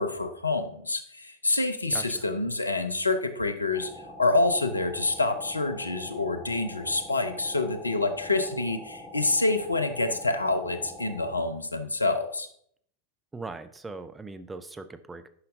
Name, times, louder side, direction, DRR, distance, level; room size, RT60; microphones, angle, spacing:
voice 1, 0.0-3.9 4.2-12.5, left 2 dB, 80° left, 9 dB, 0.6 m, -27 dB
voice 2, 1.9-2.2 13.3-15.3, right 3 dB, 10° right, 10 dB, 0.4 m, -40 dB
sound 1, 3.7-11.5, left 1 dB, 15° left, 1.2 m, -44 dB
9.6 x 5.7 x 2.6 m, 0.66 s
figure-of-eight pair, 90°, 0 cm